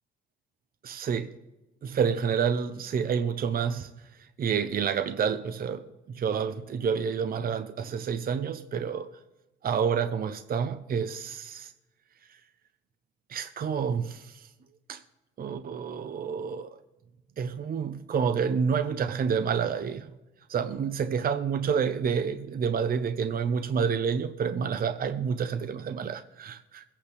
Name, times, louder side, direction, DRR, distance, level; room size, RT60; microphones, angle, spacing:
voice 1, 0.8-1.3 1.8-3.9 4.4-9.1 9.6-11.7 13.3-14.5 14.9-15.0 15.4-16.8 17.4-20.1 20.5-26.8, right 6 dB, 50° right, 0.7 m, -29 dB
22.0 x 8.6 x 3.4 m
cardioid pair, 90°, 20 cm